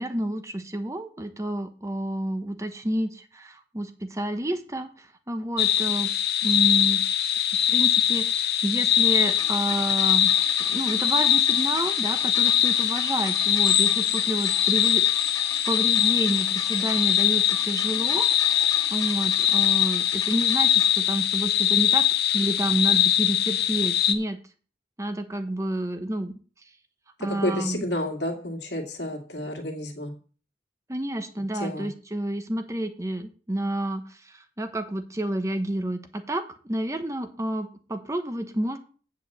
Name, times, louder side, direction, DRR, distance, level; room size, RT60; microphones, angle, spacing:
voice 1, 0.0-6.1 6.4-7.0 7.7-10.3 10.7-15.1 15.7-22.0 22.3-24.4 25.0-26.3 27.2-27.9 30.9-38.8, right 1 dB, 15° right, 8 dB, 0.9 m, -29 dB
sound 1, 5.6-24.1, left 10 dB, 65° left, 0.9 m, -22 dB
sound 2, 9.2-20.9 21.8-21.9, left 3 dB, 20° left, 1.6 m, -40 dB
voice 2, 27.2-30.1 31.5-31.9, left 1 dB, 80° left, 3 dB, 2.4 m, -30 dB
8.8 x 5.3 x 7.9 m, 0.40 s
head